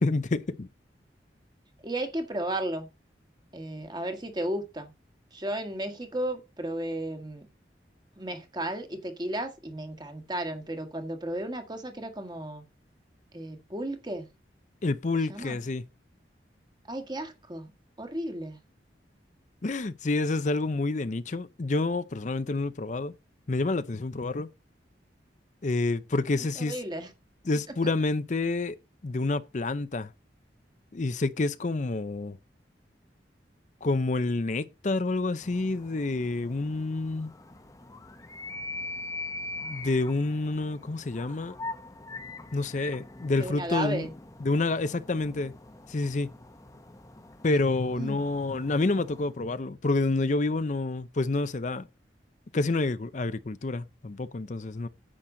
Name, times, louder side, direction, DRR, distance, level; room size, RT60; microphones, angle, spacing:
voice 1, 0.0-0.7 14.8-15.8 19.6-23.1 23.5-24.5 25.6-26.7 27.5-28.8 29.0-30.1 30.9-32.4 33.8-37.3 39.6-41.5 42.5-44.1 44.4-45.5 45.9-46.3 47.4-51.9 52.5-54.9, left 2 dB, 45° left, 0.6 m, -28 dB
voice 2, 1.8-2.9 3.5-4.9 5.3-7.5 8.2-12.6 13.3-14.3 15.3-15.6 16.9-17.7 18.0-18.6 26.5-27.1 43.3-44.1 48.0-48.2, right 1 dB, 25° right, 1.7 m, -34 dB
sound 1, 35.4-49.4, left 2 dB, 20° left, 0.9 m, -43 dB
10.0 x 7.8 x 3.8 m
head